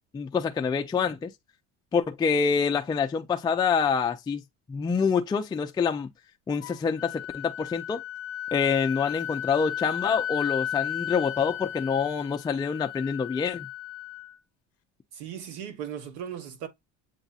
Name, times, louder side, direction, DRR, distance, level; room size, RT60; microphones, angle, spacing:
voice 1, 0.1-1.3 1.9-4.4 4.7-6.1 6.5-8.0 8.5-13.7, left 6 dB, 15° left, 0.4 m, -26 dB
Wind instrument woodwind instrument, 6.6-14.4, left 10 dB, 45° left, 0.7 m, -35 dB
voice 2, 15.1-16.7, right 9 dB, 85° right, 1.4 m, -37 dB
8.0 x 2.7 x 2.3 m
cardioid pair, 130°, 33 cm